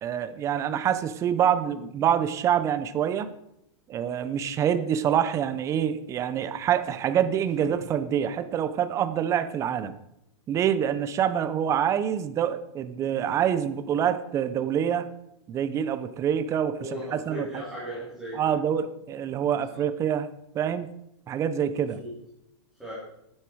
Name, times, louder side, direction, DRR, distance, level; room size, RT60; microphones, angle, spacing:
voice 1, 0.0-3.3 3.9-9.9 10.5-15.1 15.5-17.6 18.3-20.3 20.5-20.9 21.3-22.0, right 9 dB, 20° right, 12 dB, 0.7 m, -26 dB
sound 1, 6.9-8.6, left 2 dB, 35° left, 5.8 m, -47 dB
voice 2, 16.8-18.6 19.7-19.8 21.7-22.1 22.8-23.0, equal, ahead, -10 dB, 3.8 m, -37 dB
12.0 x 9.8 x 4.7 m, 0.81 s
supercardioid pair, 160°, 15 cm